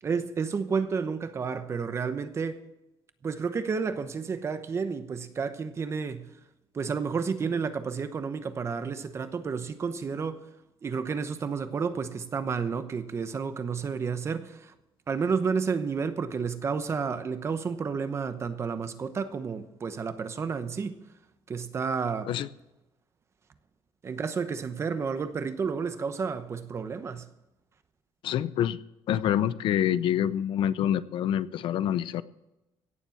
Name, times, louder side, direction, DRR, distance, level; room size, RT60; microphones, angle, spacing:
voice 1, 0.0-2.6 3.2-6.4 6.7-10.5 10.8-14.7 15.1-21.0 21.5-22.3 24.0-27.3, right 5 dB, 30° right, 0.9 m, -31 dB
voice 2, 28.2-28.8 29.1-32.2, left 10 dB, 65° left, 0.6 m, -26 dB
17.0 x 7.4 x 7.1 m
cardioid pair, 170°, 9 cm